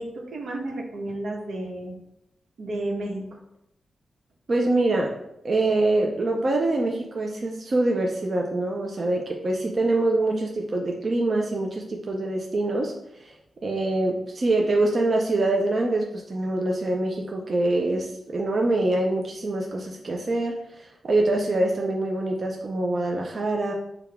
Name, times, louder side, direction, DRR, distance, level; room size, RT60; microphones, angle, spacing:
voice 1, 0.0-2.0 2.6-3.3, right 1 dB, 80° right, -1 dB, 1.1 m, -32 dB
voice 2, 4.5-5.2 5.4-12.9 13.2-13.3 13.6-23.7, right 2 dB, 40° right, 0 dB, 0.5 m, -24 dB
6.7 x 2.3 x 3.4 m, 0.82 s
wide cardioid pair, 135°, 0 cm